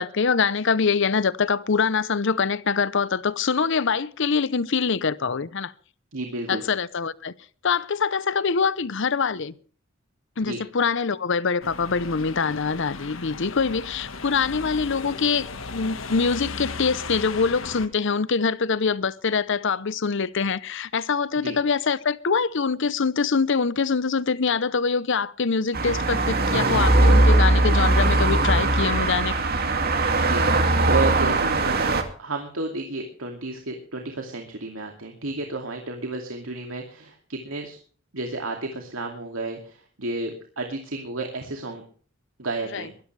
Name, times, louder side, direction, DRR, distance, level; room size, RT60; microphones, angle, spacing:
voice 1, 0.0-5.7 6.5-7.3 7.6-9.5 10.4-29.4 42.7-42.8, left 5 dB, 65° left, 0.7 m, -24 dB
voice 2, 6.1-6.6 10.4-10.6 21.4-21.6 30.2-37.8 38.1-41.8 42.4-42.9, right 2 dB, 85° right, 2.5 m, -32 dB
sound 1, 11.6-17.9, left 4 dB, 80° left, 1.6 m, -36 dB
sound 2, 25.7-32.0, right 2 dB, 50° right, 2.4 m, -20 dB
22.5 x 12.5 x 3.3 m
head